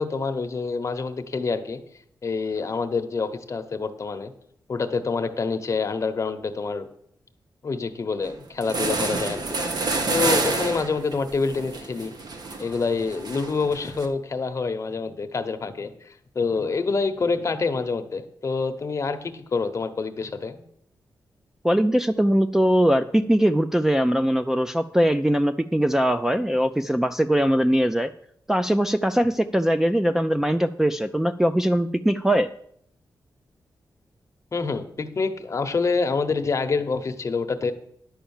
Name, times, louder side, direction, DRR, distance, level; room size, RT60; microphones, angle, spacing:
voice 1, 0.0-1.8 2.2-4.3 4.7-6.9 7.6-9.6 10.1-12.1 12.6-20.6 34.5-37.7, left 4 dB, 40° left, 7 dB, 0.9 m, -27 dB
sound 1, 8.2-8.3 8.6-14.1, right 3 dB, 60° right, 1.2 m, -28 dB
voice 2, 21.6-28.1 28.5-32.5, equal, 5° right, 6 dB, 0.3 m, -21 dB
10.0 x 5.7 x 7.1 m, 0.68 s
wide cardioid pair, 130°, 8 cm